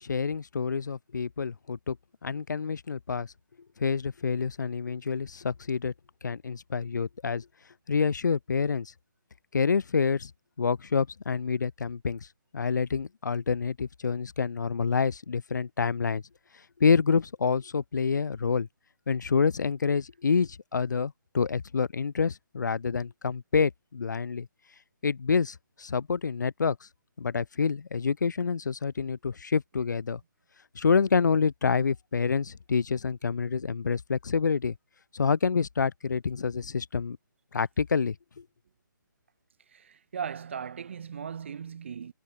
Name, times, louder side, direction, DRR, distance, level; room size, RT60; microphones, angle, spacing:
voice 1, 0.0-2.0 2.2-3.3 3.8-5.9 6.2-7.4 7.9-8.9 9.5-10.3 10.6-12.2 12.5-16.2 16.8-18.7 19.1-24.5 25.0-26.8 27.2-30.2 30.8-34.8 35.1-37.2 37.5-38.4, left 5 dB, 60° left, 0.4 m, -27 dB
voice 2, 39.7-42.1, right 7 dB, 35° right, 0.4 m, -38 dB
figure-of-eight pair, 140°, 11 cm